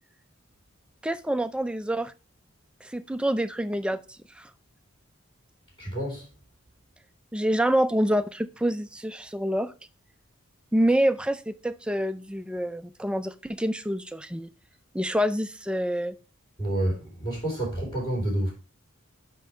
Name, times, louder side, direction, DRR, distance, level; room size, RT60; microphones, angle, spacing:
voice 1, 1.0-2.1 2.8-4.0 4.4-4.5 7.3-9.7 10.7-14.5 14.9-16.1, equal, 5° right, 0.4 m, -27 dB
voice 2, 5.8-6.3 16.6-18.5, right 1 dB, 25° left, 3.6 m, -29 dB
5.7 x 5.4 x 4.9 m
head